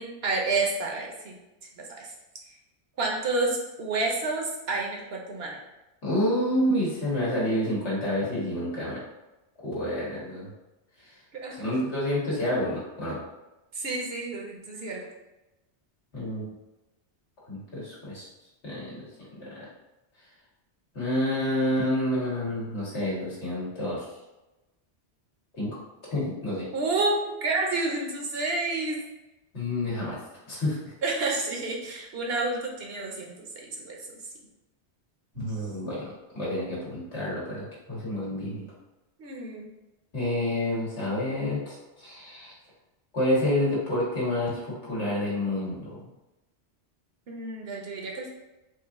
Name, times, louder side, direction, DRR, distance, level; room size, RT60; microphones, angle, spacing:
voice 1, 0.0-1.3 1.8-2.1 3.0-5.6 11.4-11.7 13.7-15.0 26.7-27.1 27.4-29.0 31.0-33.3 33.7-34.0 39.2-39.7 47.3-48.3, right 3 dB, 65° right, 0 dB, 1.1 m, -29 dB
voice 2, 6.0-9.0 9.6-10.5 11.0-11.2 11.5-13.2 16.1-16.4 17.5-18.3 18.6-19.1 19.4-19.7 20.9-24.1 25.5-25.8 26.0-26.7 29.5-30.2 30.5-30.9 35.3-38.6 40.1-42.5 43.1-46.1, left 1 dB, 80° left, -7 dB, 2.0 m, -29 dB
4.6 x 2.6 x 3.6 m, 1.0 s
omnidirectional pair, 1.1 m